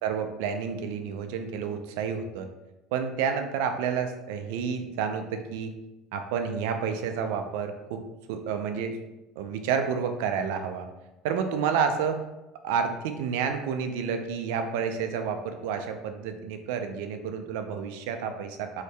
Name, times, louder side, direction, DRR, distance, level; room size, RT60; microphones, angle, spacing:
voice 1, 0.0-2.5 2.9-5.7 6.1-8.0 8.3-9.0 9.4-10.9 11.2-12.2 12.6-18.8, right 6 dB, 75° right, 6 dB, 0.4 m, -30 dB
3.2 x 2.7 x 3.2 m, 1.0 s
hypercardioid pair, 85°, 0 cm